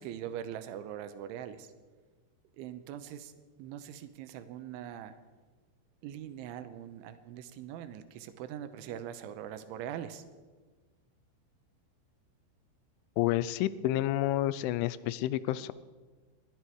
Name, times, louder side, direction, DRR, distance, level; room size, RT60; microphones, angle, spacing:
voice 1, 0.0-1.7 2.5-3.3 3.6-5.2 6.0-10.2, right 10 dB, 85° right, 11 dB, 3.3 m, -42 dB
voice 2, 13.2-15.7, left 14 dB, 90° left, 17 dB, 3.1 m, -29 dB
21.0 x 14.0 x 4.7 m, 1.4 s
omnidirectional pair, 5.4 m